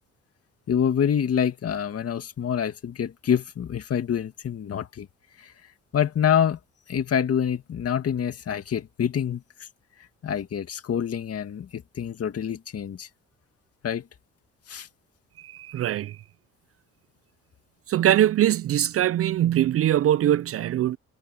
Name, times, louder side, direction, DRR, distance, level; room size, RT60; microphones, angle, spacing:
voice 1, 0.7-5.1 5.4-5.5 5.9-6.6 6.9-9.4 10.2-13.1 13.8-14.0 14.7-14.9, left 8 dB, 50° left, 2.1 m, -26 dB
voice 2, 15.4-16.2 17.9-21.0, right 12 dB, 50° right, 0.4 m, -22 dB
cardioid pair, 90°, 30 cm